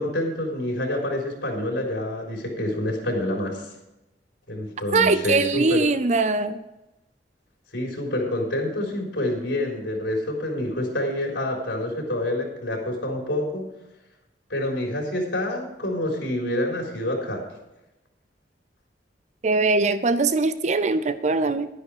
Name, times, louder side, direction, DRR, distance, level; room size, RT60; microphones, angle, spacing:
voice 1, 0.0-3.7 4.5-5.8 7.7-13.7 14.5-17.4, left 1 dB, 90° left, 0 dB, 3.9 m, -27 dB
voice 2, 4.9-6.6 19.4-21.7, right 3 dB, 40° right, 12 dB, 0.5 m, -21 dB
11.5 x 10.5 x 4.9 m, 0.98 s
head